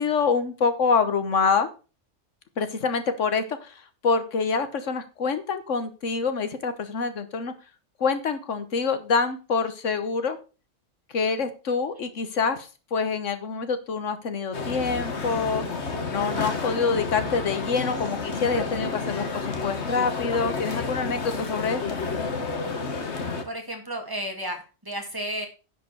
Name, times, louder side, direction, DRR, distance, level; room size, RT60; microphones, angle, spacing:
voice 1, 0.0-1.7 2.6-7.5 8.0-10.4 11.1-15.6 16.1-22.0, left 5 dB, 85° left, 10 dB, 1.5 m, -26 dB
sound 1, 14.5-23.4, left 4 dB, 65° left, 1.7 m, -30 dB
voice 2, 23.4-25.5, right 1 dB, 15° right, 2 dB, 2.3 m, -32 dB
10.5 x 5.1 x 6.5 m, 0.34 s
omnidirectional pair, 1.2 m